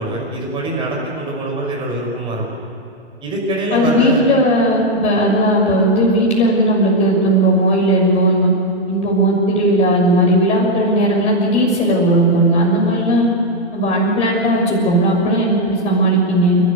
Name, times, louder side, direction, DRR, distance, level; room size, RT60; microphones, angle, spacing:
voice 1, 0.0-2.4 3.2-4.3, right 1 dB, 15° right, -1 dB, 5.6 m, -23 dB
voice 2, 3.7-8.5 8.9-13.3 13.7-16.6, right 1 dB, 20° left, -2 dB, 6.4 m, -16 dB
30.0 x 13.0 x 9.6 m, 2.9 s
figure-of-eight pair, 130°, 33 cm